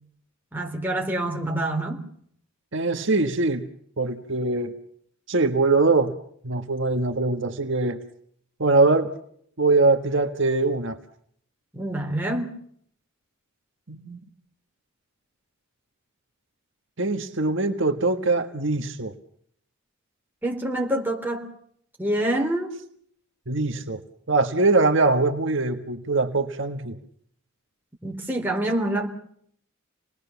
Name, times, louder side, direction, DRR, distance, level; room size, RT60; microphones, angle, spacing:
voice 1, 0.5-2.0 11.7-12.6 20.4-21.5 22.0-22.7 28.0-29.1, right 1 dB, 10° right, 3.5 m, -26 dB
voice 2, 2.7-3.7 4.0-4.7 5.3-6.1 6.4-8.0 8.6-9.1 9.6-11.0 13.9-14.2 17.0-19.1 23.5-24.0 24.3-27.0, right 3 dB, 60° right, 1.5 m, -22 dB
28.0 x 20.0 x 7.1 m
head